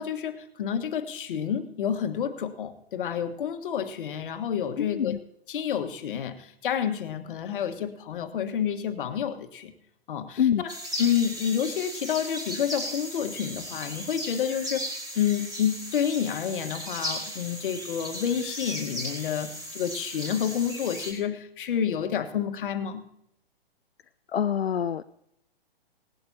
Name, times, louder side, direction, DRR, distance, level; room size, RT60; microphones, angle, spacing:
voice 1, 0.0-5.2 5.5-9.7 10.1-10.7 11.0-14.9 15.1-23.0, left 8 dB, 60° left, 8 dB, 1.5 m, -29 dB
voice 2, 4.8-5.2 10.4-10.6 24.3-25.0, left 9 dB, 85° left, 11 dB, 0.5 m, -25 dB
sound 1, 10.7-21.1, equal, 15° right, 3.4 m, -36 dB
19.0 x 11.5 x 2.8 m, 0.76 s
hypercardioid pair, 120°, 30 cm